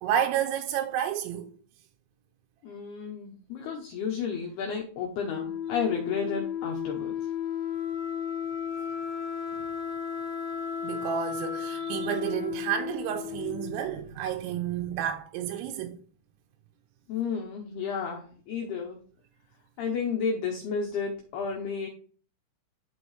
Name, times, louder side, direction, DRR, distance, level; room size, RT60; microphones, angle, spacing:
voice 1, 0.0-1.5 10.8-16.0, right 10 dB, 85° right, 3.2 m, -30 dB
voice 2, 2.6-7.2 17.1-19.0 19.8-21.9, left 6 dB, 85° left, 2.2 m, -32 dB
Wind instrument woodwind instrument, 5.2-14.0, left 8 dB, 70° left, 2.2 m, -34 dB
11.5 x 4.5 x 3.2 m
omnidirectional pair, 5.9 m